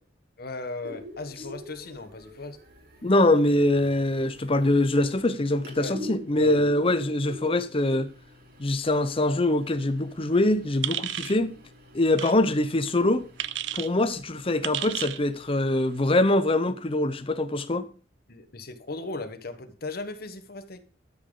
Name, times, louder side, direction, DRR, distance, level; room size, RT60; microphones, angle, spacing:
voice 1, 0.4-2.6 5.7-6.0 6.3-6.6 18.3-20.8, left 3 dB, 60° left, 1.2 m, -37 dB
sound 1, 0.8-16.2, left 1 dB, 60° right, 2.4 m, -46 dB
voice 2, 3.0-8.1 8.6-11.6 11.9-13.2 13.7-17.9, left 1 dB, 30° left, 0.8 m, -23 dB
sound 2, 10.8-11.4 12.1-12.3 13.4-13.9 14.6-15.2, right 12 dB, 75° right, 0.5 m, -31 dB
13.0 x 5.1 x 3.9 m
head